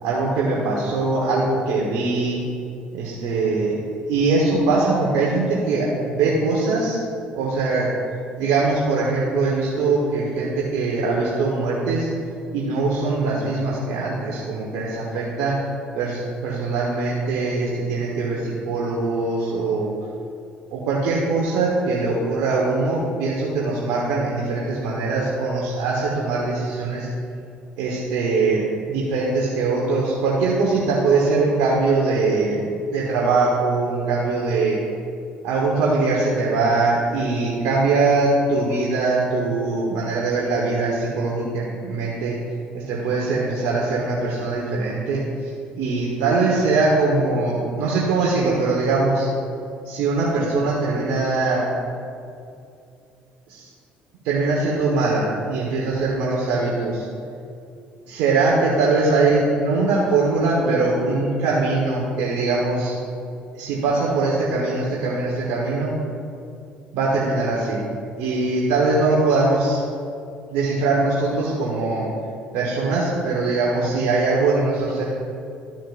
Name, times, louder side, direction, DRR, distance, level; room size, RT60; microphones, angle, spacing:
voice 1, 0.0-2.4 2.9-3.8 4.1-7.0 7.3-7.9 8.4-12.1 12.5-15.6 15.9-19.9 20.7-27.1 27.8-32.6 32.9-34.8 35.4-42.4 42.7-49.3 49.8-51.7 53.5-53.7 54.2-57.1 58.1-63.0 63.5-65.9 66.9-67.8 68.2-69.8 70.5-72.1 72.5-75.0, right 3 dB, 80° right, -4 dB, 1.3 m, -22 dB
13.0 x 7.4 x 2.6 m, 2.5 s
supercardioid pair, 70°, 4 cm